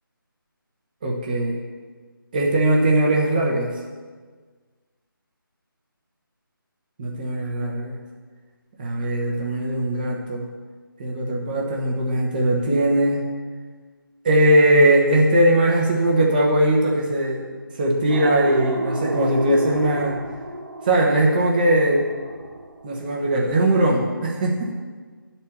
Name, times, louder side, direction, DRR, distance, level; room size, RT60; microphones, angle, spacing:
voice 1, 1.0-1.6 2.3-3.7 7.0-8.0 8.8-10.4 11.0-13.2 14.2-17.4 17.7-20.2 20.8-22.1 22.8-24.7, right 1 dB, 25° right, -2 dB, 1.1 m, -20 dB
sound 1, 18.1-23.9, right 2 dB, 55° right, 1.0 m, -33 dB
10.5 x 4.3 x 7.1 m, 1.5 s
figure-of-eight pair, 160°, 12 cm